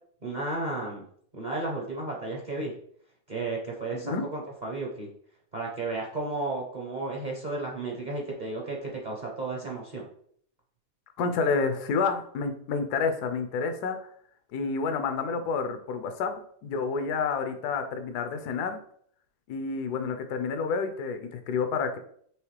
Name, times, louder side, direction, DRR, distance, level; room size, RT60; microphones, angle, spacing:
voice 1, 0.2-1.0 1.3-2.7 3.3-5.1 5.5-10.0, right 2 dB, 40° right, -2 dB, 0.6 m, -33 dB
voice 2, 11.2-14.0 14.5-16.3 16.6-18.8 19.5-22.0, left 5 dB, 85° left, 8 dB, 1.2 m, -29 dB
4.8 x 3.0 x 3.2 m, 0.63 s
omnidirectional pair, 1.7 m